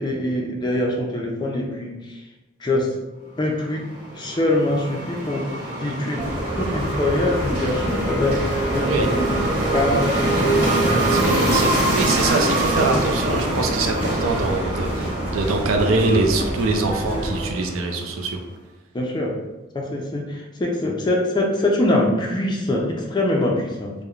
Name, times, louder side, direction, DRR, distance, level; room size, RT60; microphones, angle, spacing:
voice 1, 0.0-2.3 2.6-2.9 3.4-3.8 4.1-5.4 5.8-6.2 6.6-9.3 9.7-10.4 18.9-19.3 19.7-23.9, left 1 dB, 20° left, -1 dB, 0.3 m, -23 dB
sound 1, 3.7-18.1, right 1 dB, 50° right, 1.4 m, -24 dB
sound 2, 6.2-17.5, right 1 dB, 10° right, 0.7 m, -30 dB
voice 2, 11.1-18.4, right 3 dB, 90° right, 4 dB, 0.4 m, -23 dB
3.0 x 2.1 x 2.3 m, 1.1 s
head